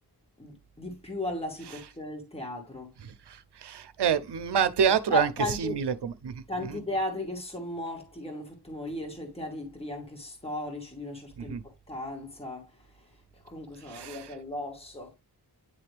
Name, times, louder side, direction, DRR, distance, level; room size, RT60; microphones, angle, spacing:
voice 1, 0.4-2.9 5.1-5.8 6.5-11.6 11.9-15.2, left 1 dB, 15° left, 2.4 m, -36 dB
voice 2, 3.0-5.3 5.6-6.4 6.7-6.8 11.4-11.6 13.9-14.3, right 7 dB, 80° right, 0.8 m, -28 dB
10.0 x 3.4 x 3.4 m
wide cardioid pair, 90°, 40 cm